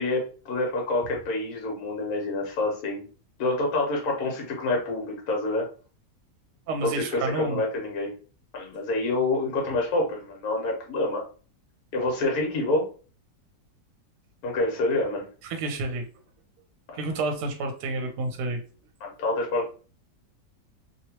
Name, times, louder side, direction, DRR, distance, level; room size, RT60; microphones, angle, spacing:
voice 1, 0.0-3.1 3.4-5.7 6.8-8.1 8.5-11.2 11.9-12.8 14.4-15.3 19.0-19.7, left 2 dB, 60° left, 0 dB, 1.4 m, -27 dB
voice 2, 6.7-7.6 15.5-16.1 16.9-18.6, right 3 dB, 70° right, 4 dB, 1.1 m, -29 dB
3.0 x 2.9 x 2.8 m, 0.37 s
omnidirectional pair, 1.9 m